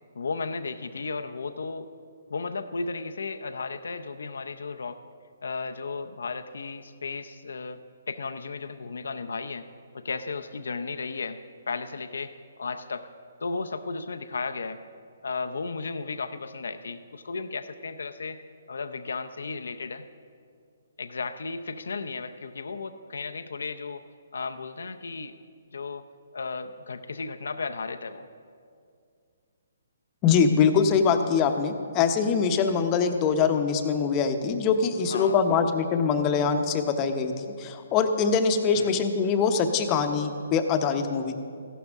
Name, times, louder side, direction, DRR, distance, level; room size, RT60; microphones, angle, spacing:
voice 1, 0.1-1.9 2.3-5.0 5.4-7.8 8.1-9.7 9.9-11.4 11.7-13.1 13.4-14.8 15.2-18.4 18.7-20.1 21.0-24.0 24.3-25.4 25.7-26.0 26.3-28.3 35.1-35.7 38.7-39.0, left 4 dB, 80° left, 9 dB, 0.6 m, -34 dB
voice 2, 30.2-37.3 37.6-41.4, left 6 dB, 25° left, 7 dB, 0.8 m, -23 dB
15.0 x 11.5 x 3.6 m, 2.2 s
hypercardioid pair, 145°, 0 cm